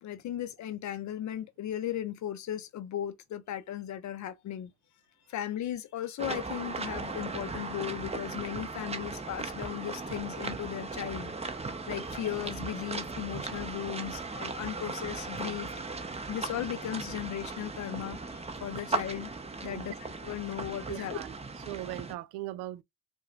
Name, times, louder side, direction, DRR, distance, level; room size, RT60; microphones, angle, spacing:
voice 1, 0.0-4.7 5.3-15.7 16.3-19.3 19.6-19.9 20.2-21.2, left 11 dB, 45° left, 0.6 m, -36 dB
sound 1, 6.2-22.1, right 3 dB, 15° right, 0.8 m, -37 dB
sound 2, 7.1-9.5, right 4 dB, ahead, 2.2 m, -56 dB
voice 2, 19.6-19.9 20.9-21.3 21.7-22.8, right 15 dB, 70° right, 0.5 m, -39 dB
4.7 x 2.3 x 2.4 m
hypercardioid pair, 70°, 41 cm